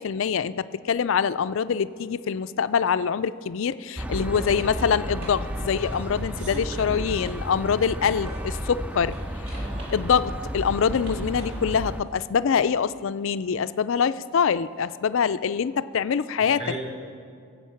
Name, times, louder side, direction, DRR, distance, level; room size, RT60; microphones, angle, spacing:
voice 1, 0.0-9.2 9.4-9.6 9.9-16.6, left 6 dB, 65° left, 14 dB, 0.4 m, -24 dB
sound 1, 1.3-1.5 3.8-8.8 9.1-12.8 15.5-15.6, right 1 dB, 75° right, 3.8 m, -48 dB
sound 2, 4.0-12.0, equal, 5° right, 0.3 m, -33 dB
voice 2, 4.0-4.5 6.4-7.0 9.5-9.9 16.4-16.8, right 1 dB, 35° right, -3 dB, 3.5 m, -37 dB
22.5 x 7.8 x 5.8 m, 2.3 s
head